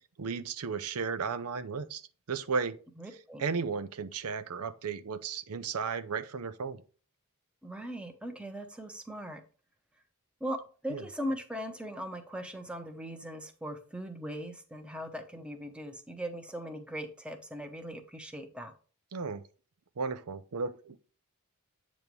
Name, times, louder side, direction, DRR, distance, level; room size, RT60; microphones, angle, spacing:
voice 1, 0.2-2.0 2.3-2.8 3.4-6.8 10.9-11.0 19.1-19.4 20.0-21.0, right 5 dB, 90° right, 0.6 m, -34 dB
voice 2, 3.0-3.4 7.6-9.4 10.4-10.6 10.8-18.7, equal, 5° right, 0.8 m, -39 dB
8.2 x 3.1 x 5.2 m
head